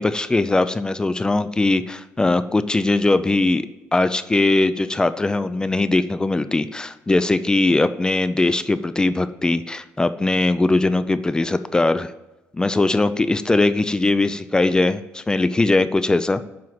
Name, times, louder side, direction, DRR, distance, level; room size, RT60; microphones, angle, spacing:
voice 1, 0.0-3.7 3.9-12.1 12.5-16.4, left 2 dB, 15° left, 12 dB, 0.5 m, -20 dB
7.7 x 5.5 x 7.7 m, 1.0 s
cardioid pair, 115°, 5 cm